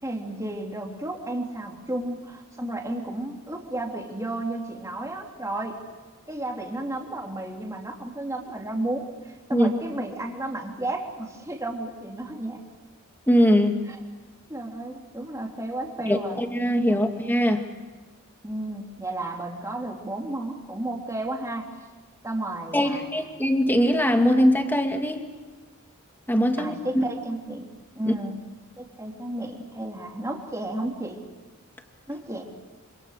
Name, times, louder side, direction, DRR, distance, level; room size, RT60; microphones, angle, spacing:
voice 1, 0.0-5.8 6.3-12.6 13.9-14.0 14.5-16.4 16.9-17.1 18.4-21.7 22.2-23.0 26.6-27.7 27.9-28.4 28.8-31.2 32.1-32.4, right 1 dB, 15° right, 1 dB, 3.2 m, -33 dB
voice 2, 13.3-13.8 16.1-17.6 22.7-25.2 26.3-27.0 28.1-28.2, equal, 10° left, 4 dB, 2.3 m, -21 dB
26.5 x 26.5 x 6.7 m, 1.3 s
head